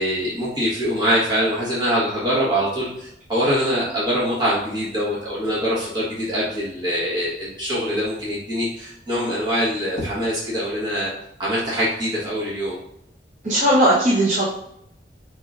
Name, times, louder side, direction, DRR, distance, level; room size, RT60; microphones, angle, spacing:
voice 1, 0.0-11.1 11.4-12.8, equal, 25° right, -8 dB, 1.4 m, -23 dB
voice 2, 13.4-14.4, right 1 dB, 40° right, -7 dB, 0.8 m, -17 dB
5.1 x 3.7 x 2.5 m, 0.75 s
head